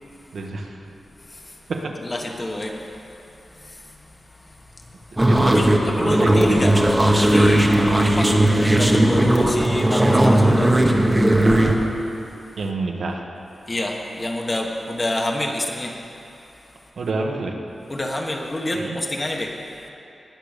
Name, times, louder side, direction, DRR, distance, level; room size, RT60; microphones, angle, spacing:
voice 1, 0.3-0.9 1.7-2.0 5.3-5.6 6.0-6.7 12.6-13.3 17.0-17.6 18.7-19.0, right 3 dB, 70° right, 2 dB, 1.3 m, -28 dB
voice 2, 1.2-1.6 2.0-5.1 5.5-6.7 7.0-11.2 11.8-11.9 13.7-16.0 17.9-19.7, left 1 dB, 25° left, 1 dB, 1.2 m, -29 dB
sound 1, 5.2-11.7, right 1 dB, 10° right, 1.0 m, -17 dB
20.0 x 6.8 x 6.7 m, 2.9 s
wide cardioid pair, 150°, 0 cm